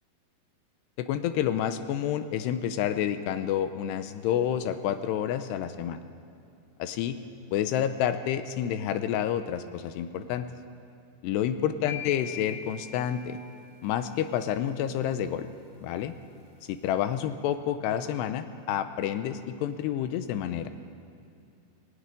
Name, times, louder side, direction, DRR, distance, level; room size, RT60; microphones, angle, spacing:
voice 1, 1.0-6.0 6.8-7.2 7.5-10.5 11.2-13.4 13.8-15.5 15.8-16.1 16.7-20.7, left 10 dB, 85° left, 10 dB, 2.8 m, -29 dB
sound 1, 11.9-14.0, left 8 dB, 35° left, 3.6 m, -41 dB
18.0 x 15.5 x 9.7 m, 2.6 s
omnidirectional pair, 4.8 m